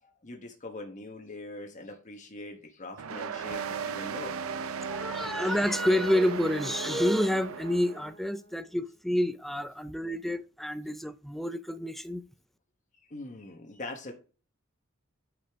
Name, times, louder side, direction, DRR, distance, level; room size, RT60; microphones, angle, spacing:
voice 1, 0.0-4.4 13.1-14.1, left 2 dB, 35° left, 1.1 m, -42 dB
sound 1, 3.0-8.1, right 5 dB, 80° right, 0.6 m, -36 dB
Brass instrument, 4.6-9.0, right 1 dB, 20° left, 1.3 m, -53 dB
voice 2, 4.9-12.2, equal, ahead, 0.4 m, -28 dB
8.4 x 5.1 x 3.5 m
head